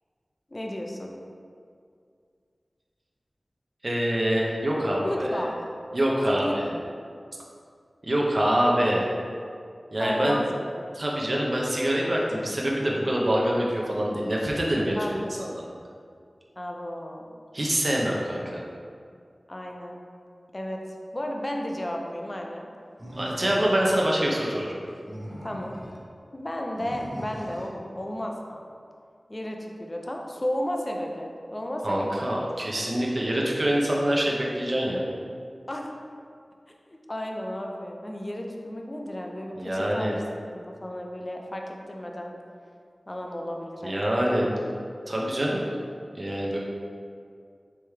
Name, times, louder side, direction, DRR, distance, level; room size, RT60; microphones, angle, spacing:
voice 1, 0.5-1.1 5.0-5.6 6.3-6.8 10.0-10.7 15.0-15.4 16.6-17.3 19.5-19.9 20.5-20.8 21.1-22.7 23.4-23.7 25.4-25.7 26.3-28.7 29.3-32.3 35.7-35.9 36.9-40.2 40.5-42.3 43.1-44.5, left 1 dB, 30° left, 1 dB, 0.5 m, -33 dB
voice 2, 3.8-5.5 5.9-6.7 8.0-9.1 9.9-10.4 10.9-15.7 17.5-18.7 23.1-24.8 31.8-35.0 39.6-40.1 43.8-44.5 45.1-45.6 46.1-46.6, right 1 dB, 45° right, -3 dB, 0.6 m, -25 dB
Animal, 23.0-24.2 24.9-26.0 26.8-27.8, equal, 25° right, 1.1 m, -39 dB
4.7 x 3.4 x 3.2 m, 2.3 s
wide cardioid pair, 70°, 0 cm